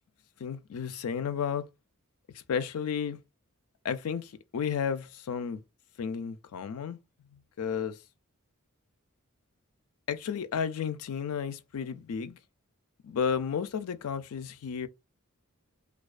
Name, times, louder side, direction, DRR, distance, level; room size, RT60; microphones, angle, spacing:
voice 1, 0.4-1.7 2.3-3.2 3.8-5.6 6.0-7.0 7.6-8.0 10.1-12.4 13.0-14.9, left 7 dB, 75° left, 0.4 m, -32 dB
2.3 x 2.3 x 2.4 m
head